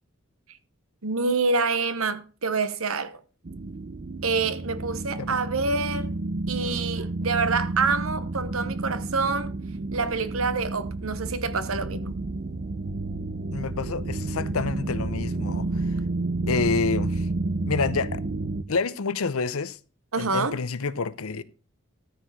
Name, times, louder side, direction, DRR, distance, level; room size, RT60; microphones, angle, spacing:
voice 1, 1.0-3.2 4.2-6.1 6.5-9.5 9.9-12.2 20.1-20.6, right 4 dB, 70° right, 1.1 m, -27 dB
sound 1, 3.5-18.6, right 2 dB, 45° right, 0.6 m, -30 dB
voice 2, 13.5-15.7 16.5-17.3 17.7-18.2 18.7-19.8 20.2-21.4, left 4 dB, 80° left, 0.7 m, -28 dB
13.5 x 4.8 x 6.4 m
head